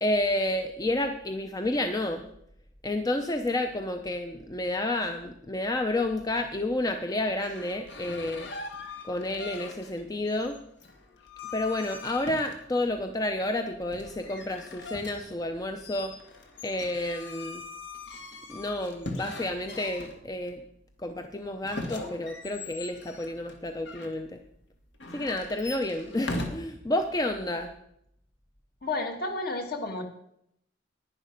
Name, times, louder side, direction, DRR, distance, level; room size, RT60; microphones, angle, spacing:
voice 1, 0.0-2.2 2.8-8.5 9.0-10.6 11.5-16.2 16.6-17.6 18.5-20.6 21.0-24.4 25.1-27.7, left 1 dB, 20° left, 6 dB, 0.6 m, -30 dB
sound 1, 7.3-10.0 10.3-12.9 13.9-20.5 21.6-24.1 24.9-26.5, left 2 dB, 70° left, 1.8 m, -41 dB
voice 2, 28.8-30.0, left 2 dB, 55° left, 4 dB, 1.7 m, -31 dB
10.5 x 10.0 x 5.1 m, 0.75 s
head